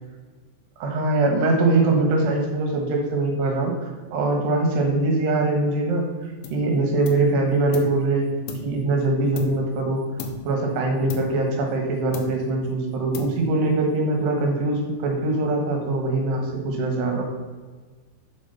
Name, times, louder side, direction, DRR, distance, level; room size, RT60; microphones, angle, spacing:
voice 1, 0.8-8.3 8.6-10.0 10.5-17.2, right 2 dB, 70° right, 2 dB, 3.4 m, -22 dB
sound 1, 6.4-6.7 7.0-8.0 8.5-9.8 10.2-10.6 11.1-11.8 12.1-12.7 13.1-13.7, left 6 dB, 85° left, 3.4 m, -36 dB
7.6 x 7.3 x 5.6 m, 1.4 s
omnidirectional pair, 5.3 m